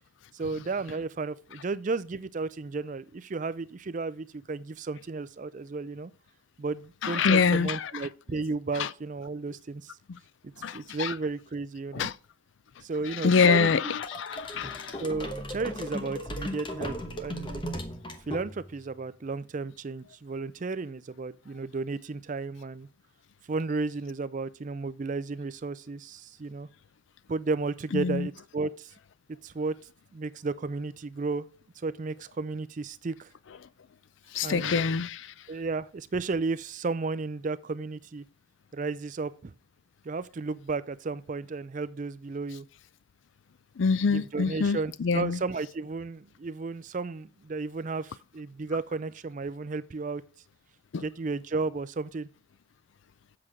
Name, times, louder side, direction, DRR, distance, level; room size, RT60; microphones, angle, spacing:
voice 1, 0.3-6.1 6.6-9.9 10.4-12.1 12.8-14.0 15.0-17.8 18.3-22.9 23.5-26.7 27.3-28.9 29.4-29.8 30.1-31.5 31.8-33.3 34.4-34.9 35.5-38.2 38.7-39.5 40.0-42.7 44.1-50.2 51.0-52.3, right 3 dB, 40° right, 0.4 m, -33 dB
voice 2, 7.0-7.9 8.7-8.9 10.1-10.2 10.6-11.1 11.9-12.1 13.1-15.0 27.9-28.3 34.3-35.3 43.8-45.4 50.9-51.0, left 5 dB, 65° left, 0.4 m, -26 dB
sound 1, 14.0-18.9, equal, 25° left, 1.0 m, -37 dB
7.7 x 6.1 x 4.9 m
head